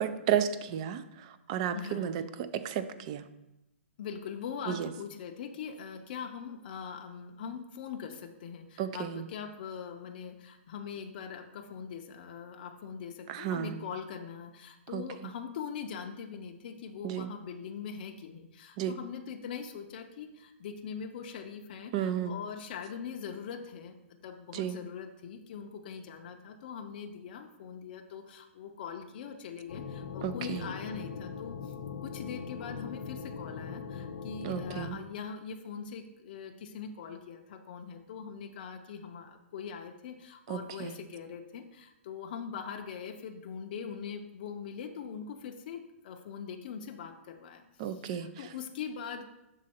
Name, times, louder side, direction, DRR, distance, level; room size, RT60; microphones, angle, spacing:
voice 1, 0.0-3.2 4.7-4.9 8.8-9.2 13.3-13.8 14.9-15.0 17.0-17.3 18.8-19.0 21.9-22.3 24.5-24.8 30.2-30.7 34.4-35.0 40.5-41.0 47.8-48.3, right 9 dB, 30° right, 12 dB, 0.3 m, -33 dB
voice 2, 1.7-2.1 4.0-31.7 32.0-49.2, left 7 dB, 40° left, 3 dB, 0.5 m, -42 dB
sound 1, 29.7-34.9, left 6 dB, 80° left, 0.8 m, -40 dB
6.3 x 3.8 x 4.3 m, 0.92 s
hypercardioid pair, 160°, 7 cm